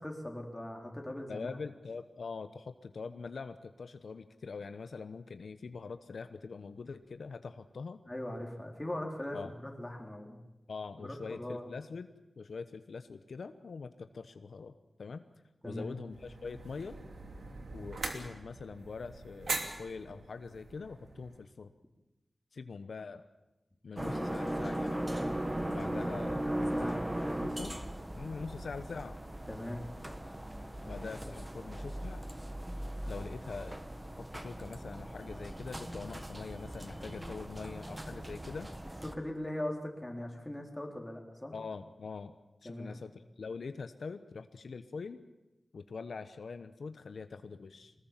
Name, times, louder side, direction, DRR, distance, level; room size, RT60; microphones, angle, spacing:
voice 1, 0.0-1.5 8.1-10.4 11.0-11.7 15.6-16.0 26.0-26.2 26.4-27.0 29.5-29.9 39.0-41.6 42.6-43.0, left 1 dB, 10° left, 1 dB, 4.0 m, -40 dB
voice 2, 1.3-8.0 9.3-9.5 10.7-12.1 12.4-14.7 15.0-15.2 15.6-17.0 17.7-21.7 22.5-23.2 23.8-25.0 25.7-26.4 26.8-26.9 27.4-27.8 28.1-29.2 30.8-32.2 33.1-33.8 34.2-38.7 41.5-42.3 42.6-43.1 43.4-45.2 45.7-47.9, left 4 dB, 80° left, 10 dB, 1.0 m, -43 dB
sound 1, 16.1-21.5, right 3 dB, 70° right, 2.8 m, -42 dB
sound 2, 24.0-39.1, right 1 dB, 15° right, 1.6 m, -38 dB
23.5 x 20.0 x 7.5 m, 1.0 s
wide cardioid pair, 90°, 0 cm